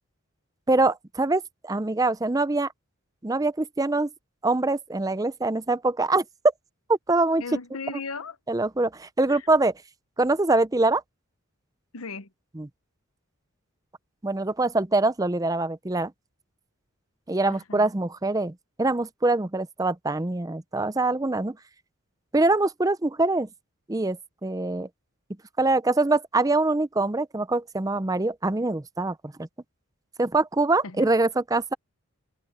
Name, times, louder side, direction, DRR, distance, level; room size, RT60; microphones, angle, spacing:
voice 1, 0.7-2.7 3.2-4.1 4.4-6.2 6.9-7.4 8.5-9.7 10.2-11.0 12.6-12.7 14.2-16.1 17.3-21.6 22.3-23.5 23.9-24.9 25.6-29.5 30.2-31.7, right 2 dB, 15° right, 0.5 m, -24 dB
voice 2, 7.4-8.4 9.3-9.5 11.9-12.3 17.4-17.9 30.8-31.0, left 4 dB, 80° left, 0.9 m, -36 dB
head